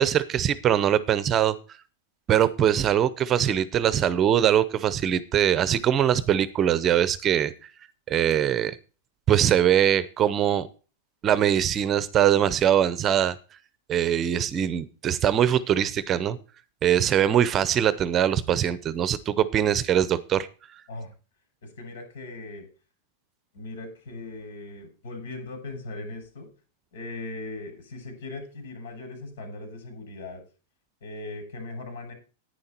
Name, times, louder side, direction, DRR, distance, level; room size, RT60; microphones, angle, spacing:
voice 1, 0.0-1.5 2.3-7.5 8.1-8.8 9.3-10.7 11.2-13.4 13.9-16.4 16.8-20.5, right 10 dB, 20° right, 16 dB, 0.7 m, -22 dB
voice 2, 21.6-22.7 23.5-26.5 26.9-30.4 31.0-32.1, left 2 dB, 80° left, 5 dB, 6.6 m, -39 dB
10.5 x 9.7 x 4.4 m, 0.34 s
supercardioid pair, 165°, 0 cm